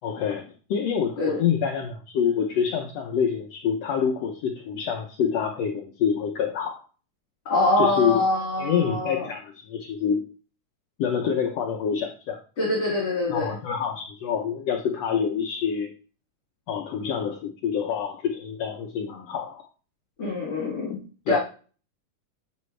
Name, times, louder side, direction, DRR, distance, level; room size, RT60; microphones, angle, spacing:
voice 1, 0.0-6.8 7.8-8.2 8.6-10.2 11.0-12.4 13.3-15.9 16.7-19.7 21.3-21.4, left 7 dB, 80° left, 2 dB, 1.5 m, -26 dB
voice 2, 7.5-9.3 12.6-13.6 20.2-21.0 21.3-21.4, left 2 dB, 40° left, -5 dB, 2.5 m, -24 dB
7.8 x 6.1 x 3.2 m, 0.38 s
omnidirectional pair, 3.8 m